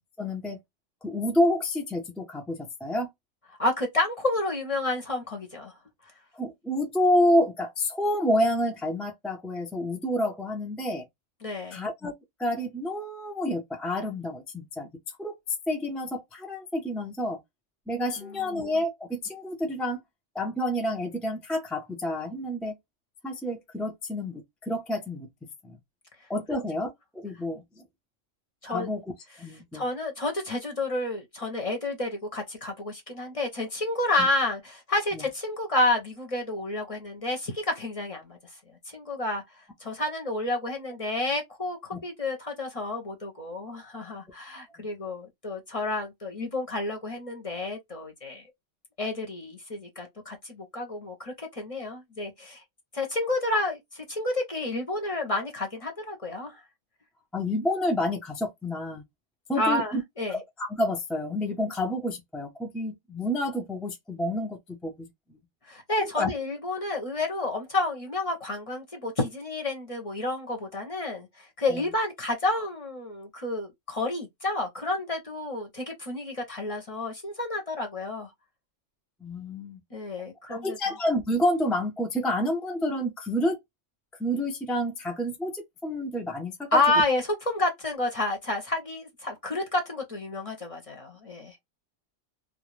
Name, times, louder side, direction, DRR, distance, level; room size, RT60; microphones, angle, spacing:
voice 1, 0.2-0.6 1.0-3.1 6.3-11.1 11.7-12.1 12.4-14.9 15.2-15.3 15.7-17.4 17.9-20.0 20.3-22.7 23.2-25.3 25.6-25.8 26.3-27.8 28.6-29.0 29.4-29.9 34.2-34.3 35.1-35.2 57.3-59.0 59.5-60.0 60.3-65.4 66.0-66.3 71.7-71.8 79.2-79.8 80.5-83.6 84.2-86.8, left 1 dB, ahead, 0.3 m, -29 dB
voice 2, 3.6-5.7 11.4-11.8 18.2-18.5 28.6-28.9 29.7-38.4 38.9-48.4 49.0-52.6 52.9-56.6 59.6-60.4 65.7-78.3 79.9-80.8 86.7-91.7, left 2 dB, 35° left, 0.7 m, -30 dB
2.4 x 2.0 x 3.0 m
omnidirectional pair, 1.2 m